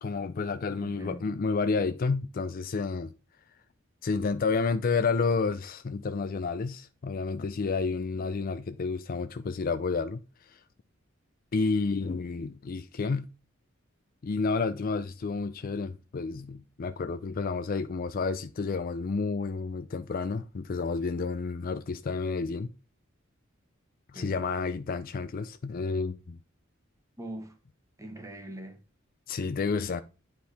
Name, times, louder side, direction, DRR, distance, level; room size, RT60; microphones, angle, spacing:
voice 1, 0.0-3.1 4.0-10.6 11.5-13.3 14.2-22.7 24.1-26.4 29.3-30.0, left 4 dB, 45° left, 0.4 m, -30 dB
voice 2, 0.8-1.3 24.1-24.4 27.2-27.6 28.0-28.8 29.4-30.0, right 1 dB, 15° right, 1.2 m, -43 dB
9.5 x 4.3 x 3.5 m
head